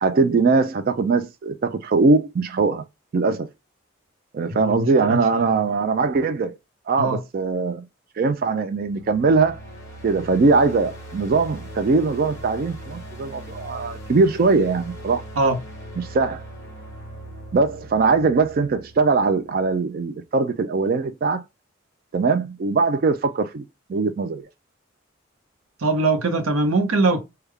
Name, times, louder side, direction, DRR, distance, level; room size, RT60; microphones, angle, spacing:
voice 1, 0.0-2.8 3.1-3.5 4.3-6.5 6.9-7.8 8.2-9.6 10.0-15.2 16.0-16.4 17.5-21.4 22.1-24.5, right 4 dB, 45° right, 0.3 m, -21 dB
voice 2, 4.6-5.2 7.0-7.2 15.4-15.6 25.8-27.2, right 2 dB, 90° right, 0.8 m, -21 dB
sound 1, 8.7-19.7, right 1 dB, 15° left, 1.0 m, -39 dB
3.5 x 2.2 x 3.2 m
head